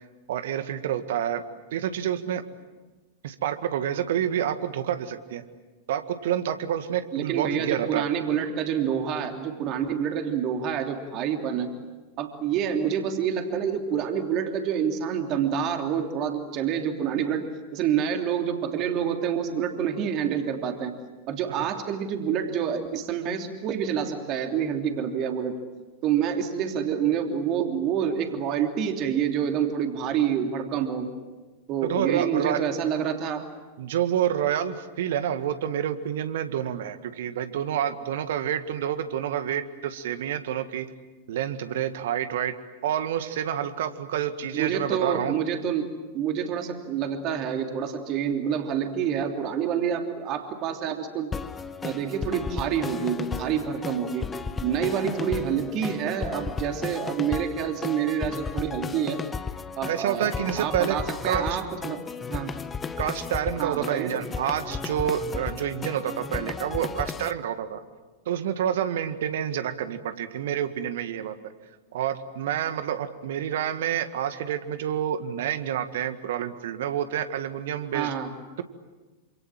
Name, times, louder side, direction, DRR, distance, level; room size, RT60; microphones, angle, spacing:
voice 1, 0.3-1.4 1.7-2.4 3.2-5.4 5.9-8.0 31.8-32.6 33.8-40.9 41.3-42.5 42.8-45.4 59.9-61.0 61.2-61.6 63.0-67.8 68.3-71.4 71.9-78.1, right 10 dB, 55° right, 10 dB, 1.8 m, -28 dB
voice 2, 7.1-11.7 12.2-21.0 21.3-25.6 26.0-31.1 31.7-33.4 44.5-45.9 46.1-51.3 51.8-54.3 54.6-59.2 59.8-62.0 62.3-62.6 63.6-64.2 77.9-78.3, right 8 dB, 40° right, 4 dB, 3.2 m, -27 dB
sound 1, 51.3-67.3, left 5 dB, 15° left, 1.2 m, -34 dB
28.0 x 27.0 x 7.6 m, 1.2 s
figure-of-eight pair, 90°, 0 cm